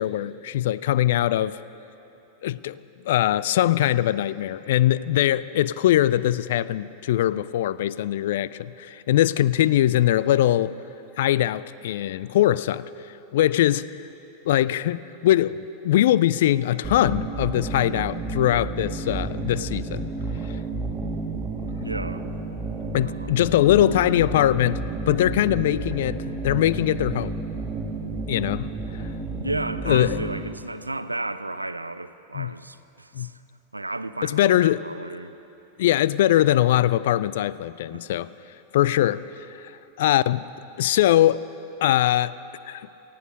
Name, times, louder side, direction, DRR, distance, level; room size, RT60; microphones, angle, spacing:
voice 1, 0.0-1.6 2.4-2.8 3.1-10.7 11.2-12.8 13.3-13.9 14.5-20.1 22.9-27.3 28.3-28.7 29.9-30.2 32.3-32.5 33.1-33.3 34.2-34.8 35.8-38.3 38.7-39.7 40.0-40.4 40.8-41.5 41.8-42.3 42.7-42.9, left 13 dB, 55° left, 0.3 m, -21 dB
sound 1, 16.8-30.4, right 3 dB, 15° right, 2.4 m, -31 dB
voice 2, 21.8-22.2 23.0-23.5 29.4-33.4 33.7-35.3 37.9-38.2, right 2 dB, 85° right, 0.5 m, -33 dB
19.0 x 14.5 x 5.2 m
figure-of-eight pair, 90°, 0 cm